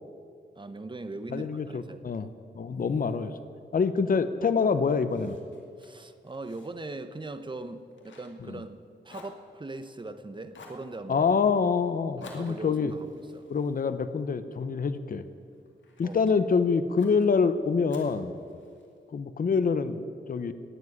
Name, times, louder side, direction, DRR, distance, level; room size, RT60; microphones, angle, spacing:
voice 1, 0.6-2.0 5.8-11.2 12.2-13.5 16.0-16.2, right 2 dB, 25° right, 10 dB, 0.9 m, -40 dB
voice 2, 1.3-2.3 2.5-3.3 3.7-5.4 11.1-12.9 13.5-15.3 16.0-18.3 19.1-20.5, left 5 dB, 50° left, 11 dB, 0.8 m, -26 dB
Fire, 5.1-8.8 9.1-10.1 10.5-10.9 12.2-14.6 15.1-16.2 17.0-17.3 17.9-19.0, left 3 dB, 80° left, 2.4 m, -52 dB
18.0 x 7.5 x 9.5 m, 2.5 s
wide cardioid pair, 105°, 19 cm